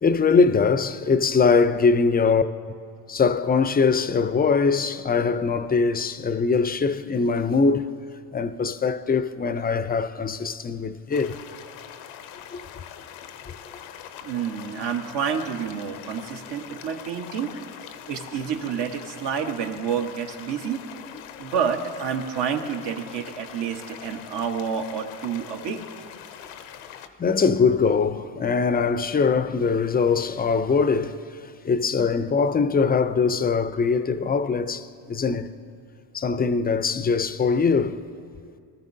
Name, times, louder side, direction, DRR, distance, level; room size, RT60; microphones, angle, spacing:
voice 1, 0.0-2.4 3.1-7.9 8.3-11.4 12.5-12.6 21.3-21.4 27.2-31.2 31.6-35.5 36.1-38.0, left 5 dB, 20° left, 0.5 m, -22 dB
sound 1, 11.1-27.1, left 9 dB, 90° left, 0.8 m, -42 dB
voice 2, 14.2-17.5 18.1-20.8 21.4-25.8, right 7 dB, 60° right, 1.3 m, -29 dB
19.5 x 13.5 x 2.7 m
supercardioid pair, 80°, 46 cm